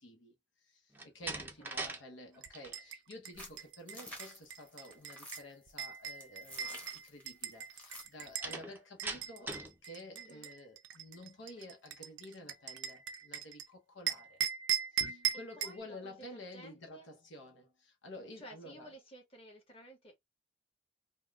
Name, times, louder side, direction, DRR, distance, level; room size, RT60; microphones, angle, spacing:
voice 1, 0.0-14.4 14.9-18.9, left 1 dB, 80° left, 1.0 m, -51 dB
Slam, 0.9-2.0 2.3-2.8 8.4-9.8, right 2 dB, 10° right, 0.5 m, -41 dB
voice 2, 1.3-1.9 10.1-10.5 15.3-17.1 18.4-20.3, right 1 dB, 30° left, 1.6 m, -55 dB
sound 1, 2.4-8.6 9.0-13.7 14.1-15.8, right 9 dB, 75° right, 0.5 m, -39 dB
sound 2, 3.3-8.3, equal, 10° left, 1.0 m, -50 dB
3.5 x 2.3 x 2.4 m
head